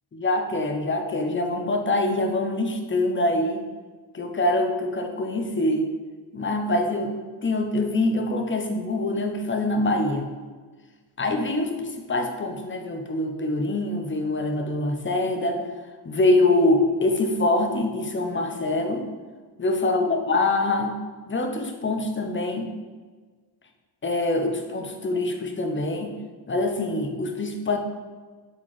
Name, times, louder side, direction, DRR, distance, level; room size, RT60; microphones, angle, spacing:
voice 1, 0.1-3.6 4.1-5.9 6.3-7.1 7.4-10.2 11.2-15.6 16.0-19.1 19.6-21.0 21.3-22.7 24.0-26.2 26.5-27.8, left 2 dB, 25° left, 4 dB, 0.6 m, -24 dB
4.0 x 4.0 x 3.1 m, 1.4 s
cardioid pair, 55°, 46 cm